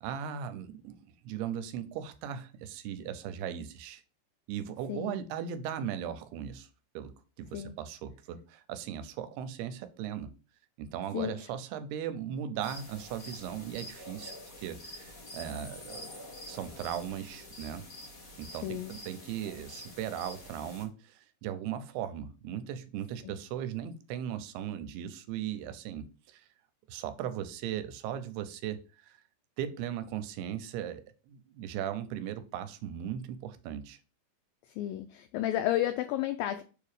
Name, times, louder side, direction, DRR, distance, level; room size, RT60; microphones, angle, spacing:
voice 1, 0.0-4.0 4.5-6.7 6.9-10.3 10.8-14.3 14.6-16.1 16.5-17.8 18.4-26.5 26.9-29.2 29.6-34.0, right 9 dB, 90° right, 2.6 m, -38 dB
voice 2, 4.9-5.2 7.5-7.8 11.1-11.5 18.6-18.9 23.2-23.4 34.7-36.6, left 13 dB, 85° left, 2.0 m, -32 dB
sound 1, 12.6-20.8, left 1 dB, 60° left, 0.8 m, -47 dB
6.9 x 2.8 x 4.8 m
omnidirectional pair, 4.6 m